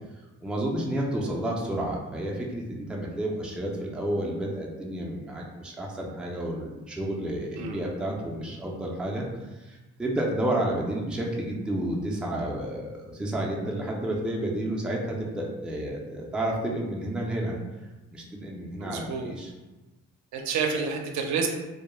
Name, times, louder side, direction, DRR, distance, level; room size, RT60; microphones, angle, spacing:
voice 1, 0.4-9.2 9.5-17.6 18.1-19.5, right 1 dB, 5° right, -2 dB, 0.4 m, -31 dB
voice 2, 18.8-19.3 20.3-21.5, right 5 dB, 70° right, 2 dB, 0.5 m, -29 dB
2.2 x 2.0 x 3.0 m, 1.1 s
cardioid pair, 90°, 30 cm